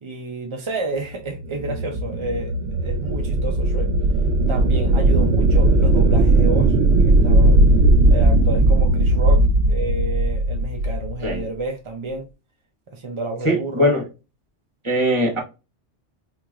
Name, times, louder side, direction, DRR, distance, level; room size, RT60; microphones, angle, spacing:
voice 1, 0.0-2.5 2.8-3.9 4.5-6.7 7.0-7.6 8.1-9.4 9.7-12.3 12.9-13.9, right 2 dB, 45° right, 0.4 m, -30 dB
sound 1, 1.3-11.4, right 2 dB, 75° right, 0.8 m, -17 dB
voice 2, 13.4-14.0 14.8-15.4, equal, 25° right, 1.2 m, -20 dB
4.5 x 2.9 x 2.4 m
omnidirectional pair, 1.2 m